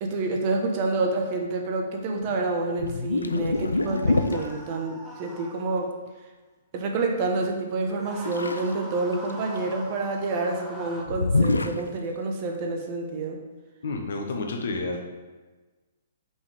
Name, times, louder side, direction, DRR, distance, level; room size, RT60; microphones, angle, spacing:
voice 1, 0.0-5.9 6.7-13.4, right 3 dB, 35° right, 2 dB, 1.0 m, -28 dB
sound 1, 2.2-2.4 2.8-4.5 8.2-8.7 9.1-9.7 11.1-11.8, left 3 dB, 75° left, 0.4 m, -25 dB
sound 2, 3.5-5.9 7.8-11.0, right 1 dB, 5° right, 1.0 m, -43 dB
voice 2, 13.8-15.0, left 3 dB, 55° left, 3 dB, 1.1 m, -30 dB
5.6 x 5.5 x 4.9 m, 1.3 s
figure-of-eight pair, 120°, 0 cm